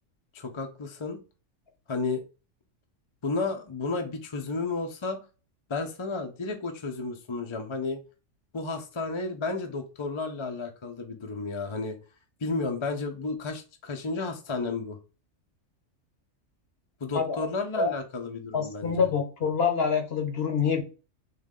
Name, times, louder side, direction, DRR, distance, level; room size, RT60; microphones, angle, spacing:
voice 1, 0.3-1.2 1.9-2.2 3.2-5.2 5.7-8.0 8.5-12.0 12.4-15.0 17.0-19.1, left 3 dB, 30° left, 4 dB, 0.5 m, -32 dB
voice 2, 17.1-17.5 17.8-17.9 18.5-20.8, left 6 dB, 55° left, 5 dB, 1.0 m, -26 dB
3.7 x 3.2 x 3.7 m, 0.33 s
omnidirectional pair, 1.4 m